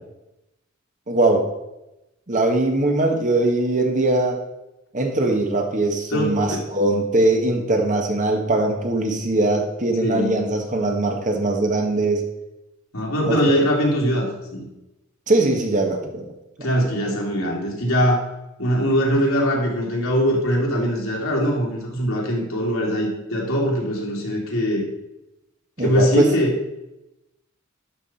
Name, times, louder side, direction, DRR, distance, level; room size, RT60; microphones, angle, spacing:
voice 1, 1.1-1.5 2.3-4.4 4.9-12.2 13.3-13.5 15.3-16.3 25.8-26.3, right 2 dB, 40° right, 3 dB, 1.4 m, -21 dB
voice 2, 6.1-6.6 10.0-10.4 12.9-14.3 14.5-14.7 16.6-18.2 18.6-24.8 25.8-26.5, equal, 85° left, -2 dB, 2.7 m, -21 dB
11.5 x 5.9 x 4.3 m, 0.94 s
head